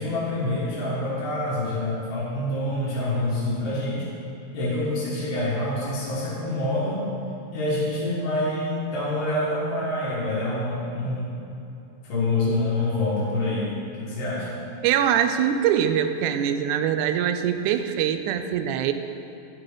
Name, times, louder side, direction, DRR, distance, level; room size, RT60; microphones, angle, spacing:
voice 1, 0.0-4.1 4.5-7.1 7.5-11.4 12.0-13.7 14.0-14.6, left 1 dB, 90° left, -8 dB, 3.4 m, -26 dB
voice 2, 14.8-18.9, right 9 dB, 80° right, 9 dB, 2.0 m, -23 dB
9.3 x 9.1 x 3.9 m, 2.8 s
omnidirectional pair, 3.6 m